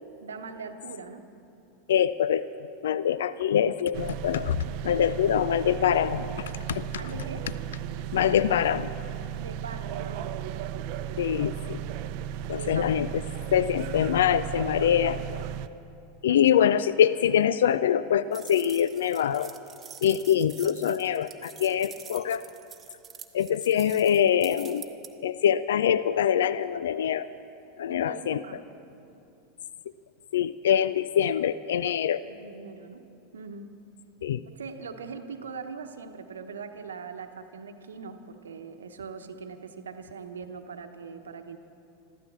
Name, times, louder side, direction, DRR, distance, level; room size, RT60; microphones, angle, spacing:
voice 1, 0.2-1.3 6.9-7.4 9.4-10.7 12.6-13.0 16.3-16.4 27.9-28.6 32.3-33.1 33.3-33.7 34.5-41.6, right 5 dB, 80° right, 8 dB, 1.0 m, -41 dB
voice 2, 1.9-2.4 2.8-6.3 6.7-7.0 8.1-8.9 11.2-11.8 12.5-13.2 13.5-15.2 16.2-19.5 20.0-22.5 23.3-24.8 25.2-27.3 27.8-28.4 30.3-32.2 34.2-34.4, left 9 dB, 70° left, 15 dB, 0.3 m, -24 dB
sound 1, 3.9-15.7, right 10 dB, 55° right, 0.6 m, -35 dB
sound 2, 18.3-25.1, right 7 dB, 25° right, 1.1 m, -46 dB
14.5 x 13.0 x 7.3 m, 2.7 s
hypercardioid pair, 90°, 0 cm